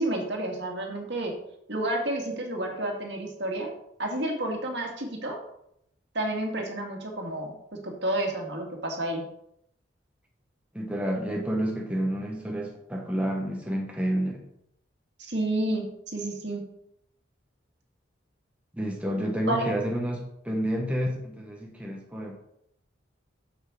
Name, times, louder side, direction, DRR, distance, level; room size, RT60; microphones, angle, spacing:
voice 1, 0.0-1.3 1.7-3.7 4.0-5.4 6.1-7.5 7.8-9.2 15.2-16.6 19.5-19.7, right 1 dB, 60° right, 1 dB, 2.0 m, -30 dB
voice 2, 10.7-14.4 18.7-22.4, equal, 5° right, 0 dB, 1.1 m, -29 dB
8.2 x 7.2 x 4.8 m, 0.77 s
head